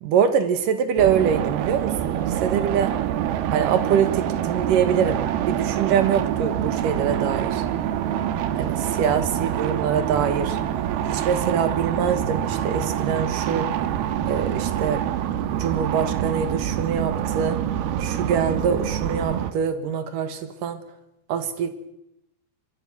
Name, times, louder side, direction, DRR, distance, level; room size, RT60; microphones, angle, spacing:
voice 1, 0.0-3.0 3.5-7.6 8.6-10.6 11.1-13.7 14.3-15.0 15.5-17.6 18.0-20.8 21.3-21.7, right 7 dB, 65° right, 10 dB, 2.9 m, -24 dB
sound 1, 1.0-19.5, right 10 dB, 80° right, 3.0 m, -26 dB
23.5 x 23.0 x 6.2 m, 0.85 s
omnidirectional pair, 4.5 m